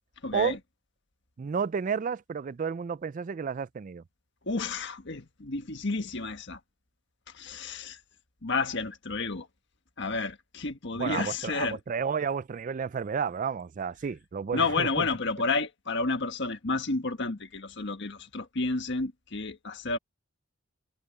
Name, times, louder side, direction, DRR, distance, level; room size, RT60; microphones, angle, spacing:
voice 1, 0.2-0.6 4.5-6.6 7.3-8.0 8.4-9.5 10.0-11.8 14.5-20.0, left 3 dB, 55° left, 1.6 m, -31 dB
voice 2, 1.4-4.0 11.0-15.1, right 6 dB, 40° right, 0.3 m, -31 dB
head